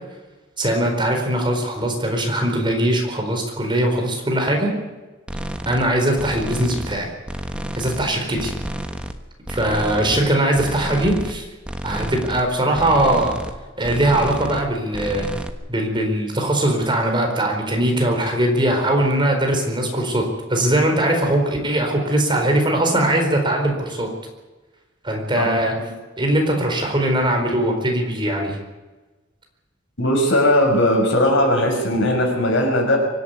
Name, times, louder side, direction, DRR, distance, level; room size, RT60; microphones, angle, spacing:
voice 1, 0.6-4.7 5.7-7.1 7.7-8.5 9.5-11.4 11.8-13.4 13.8-15.3 15.7-24.1 25.0-25.7 26.2-28.6, right 1 dB, 25° right, 2 dB, 4.5 m, -20 dB
sound 1, 5.3-5.9 6.2-7.0 7.3-8.1 8.4-9.2 9.4-10.2 10.5-11.4 11.6-12.4 12.7-13.6 13.8-14.7 14.9-15.5, right 1 dB, 5° right, 1.3 m, -30 dB
voice 2, 30.0-33.0, left 1 dB, 65° left, 2 dB, 6.1 m, -18 dB
24.5 x 11.5 x 9.6 m, 1.2 s
head